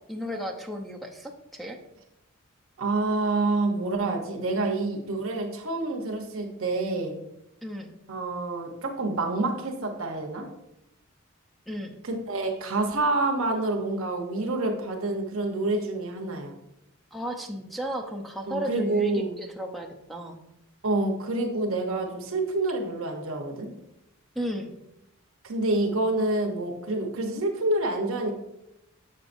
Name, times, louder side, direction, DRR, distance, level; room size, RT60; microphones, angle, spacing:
voice 1, 0.1-1.8 7.6-7.9 11.7-12.0 17.1-19.1 19.4-20.4 24.4-24.7, equal, ahead, 3 dB, 0.6 m, -34 dB
voice 2, 2.8-7.2 8.1-10.5 12.0-16.5 18.5-19.4 20.8-23.7 25.4-28.3, right 2 dB, 70° right, 1 dB, 0.9 m, -27 dB
7.2 x 6.4 x 2.6 m, 0.84 s
head